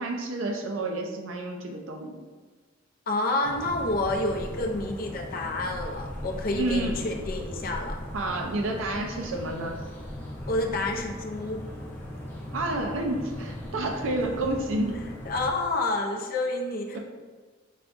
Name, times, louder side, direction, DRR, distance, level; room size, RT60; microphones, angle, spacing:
voice 1, 0.0-2.2 6.6-7.0 8.1-9.8 12.5-15.0 16.9-17.0, right 2 dB, 75° right, 2 dB, 0.5 m, -30 dB
voice 2, 3.1-8.0 10.5-11.6 15.2-17.0, left 2 dB, 45° left, 1 dB, 0.5 m, -29 dB
sound 1, 3.4-15.5, left 1 dB, 10° left, 0.7 m, -38 dB
4.9 x 3.4 x 2.5 m, 1.4 s
head